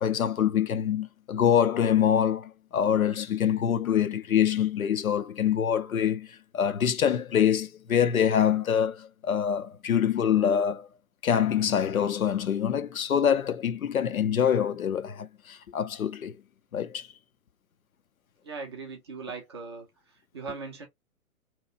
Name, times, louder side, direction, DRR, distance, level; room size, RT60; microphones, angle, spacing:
voice 1, 0.0-10.9 11.2-16.4 16.7-17.1, left 9 dB, 70° left, 0.6 m, -25 dB
voice 2, 18.4-19.9 20.3-20.9, right 4 dB, 20° right, 0.5 m, -39 dB
2.9 x 2.4 x 4.1 m
figure-of-eight pair, 125°, 44 cm